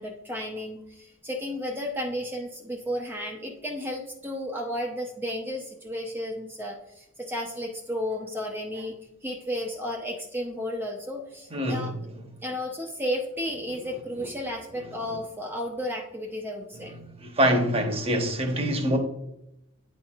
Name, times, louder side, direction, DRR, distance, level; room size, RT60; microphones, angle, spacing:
voice 1, 0.0-11.9 12.4-16.9, equal, 10° right, 0.6 m, -33 dB
voice 2, 11.5-11.9 13.8-13.9 16.8-16.9 17.2-19.0, equal, 30° right, 0.9 m, -25 dB
9.4 x 4.4 x 2.4 m
head